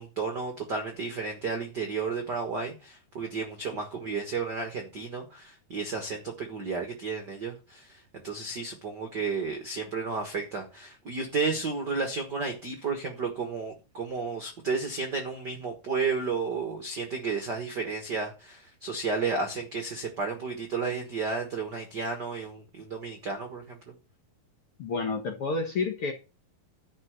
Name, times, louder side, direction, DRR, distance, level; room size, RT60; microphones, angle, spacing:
voice 1, 0.0-23.9, right 4 dB, 60° right, 1.1 m, -32 dB
voice 2, 24.8-26.1, left 4 dB, 65° left, 1.4 m, -29 dB
11.0 x 4.4 x 8.1 m
omnidirectional pair, 4.4 m